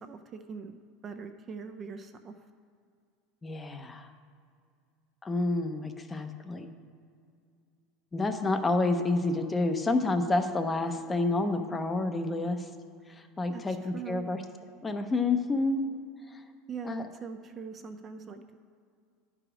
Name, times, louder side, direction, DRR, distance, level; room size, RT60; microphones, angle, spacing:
voice 1, 0.0-2.3 13.5-14.3 16.7-18.4, right 6 dB, 30° right, 7 dB, 0.5 m, -42 dB
voice 2, 3.4-4.1 5.2-6.7 8.1-12.6 13.4-14.4 14.8-15.8 16.8-17.0, left 2 dB, 15° left, 7 dB, 0.7 m, -29 dB
11.0 x 4.9 x 4.9 m, 2.3 s
supercardioid pair, 135°, 0 cm